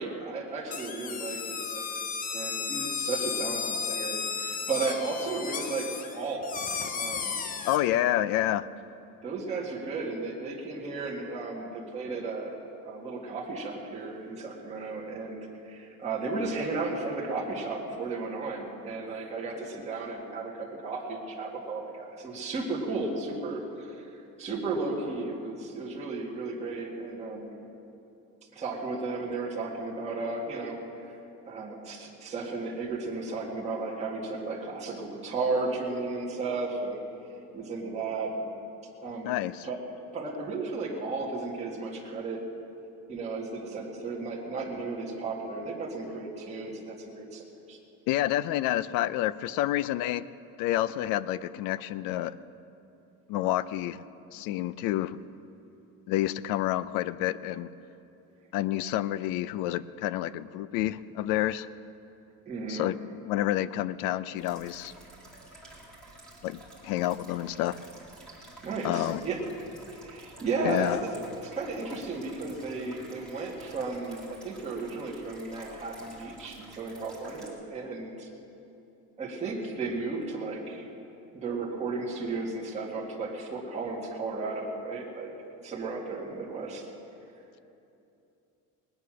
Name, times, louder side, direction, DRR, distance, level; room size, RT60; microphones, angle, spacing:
voice 1, 0.0-6.6 6.9-7.4 7.9-8.1 9.2-24.1 24.4-27.6 28.5-31.2 31.5-37.0 37.5-38.6 39.0-39.4 39.6-39.8 40.1-42.5 43.1-47.8 62.5-62.9 68.6-69.4 69.8-78.3 79.2-80.9 81.3-85.3 85.6-86.8, right 3 dB, 20° right, -4 dB, 1.9 m, -34 dB
sound 1, 0.7-7.8, left 6 dB, 25° left, 0.6 m, -34 dB
voice 2, 7.6-8.7 39.2-39.7 48.1-50.2 50.6-52.3 53.3-54.0 54.3-55.2 56.1-57.7 58.5-61.7 62.7-63.0 63.2-64.9 66.4-67.8 68.8-69.2 70.6-71.0, left 14 dB, 85° left, 17 dB, 0.6 m, -29 dB
sound 2, 64.4-77.5, right 1 dB, 5° left, 2.4 m, -51 dB
20.0 x 9.6 x 6.2 m, 2.8 s
cardioid pair, 180°, 33 cm